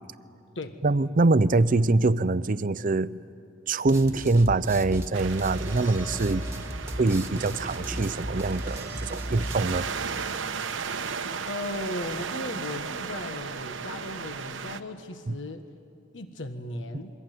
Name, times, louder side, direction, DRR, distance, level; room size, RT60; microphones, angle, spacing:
voice 1, 0.8-3.2 3.7-6.4 7.0-9.9 15.3-15.4, right 3 dB, 45° right, 15 dB, 0.6 m, -24 dB
sound 1, 3.9-9.8, right 1 dB, 15° right, 1.6 m, -35 dB
sound 2, 5.1-14.8, right 5 dB, 90° right, 1.0 m, -35 dB
voice 2, 11.5-15.6 16.1-17.1, left 1 dB, 70° left, 8 dB, 1.5 m, -36 dB
27.0 x 23.0 x 9.3 m, 2.5 s
head